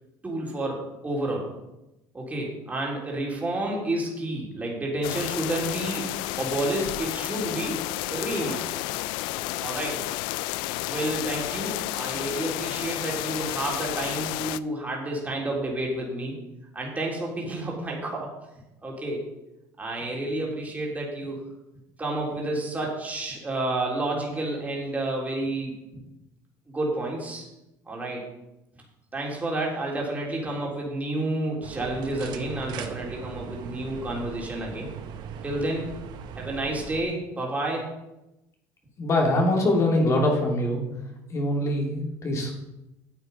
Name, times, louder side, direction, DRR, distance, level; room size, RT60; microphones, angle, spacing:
voice 1, 0.2-1.5 2.1-8.7 9.3-10.0 10.9-16.4 16.7-18.3 18.8-19.2 19.8-21.4 22.0-25.7 26.7-27.4 27.9-28.2 29.1-34.9 35.4-35.9 36.4-37.9, right 1 dB, 20° right, -2 dB, 3.6 m, -30 dB
sound 1, 5.0-14.6, left 18 dB, 75° left, 0.4 m, -31 dB
sound 2, 31.6-37.0, right 7 dB, 60° right, 1.1 m, -39 dB
voice 2, 39.0-40.8 41.3-42.5, left 1 dB, 40° left, 0 dB, 2.9 m, -23 dB
9.5 x 7.9 x 5.4 m, 0.93 s
supercardioid pair, 95°, 8 cm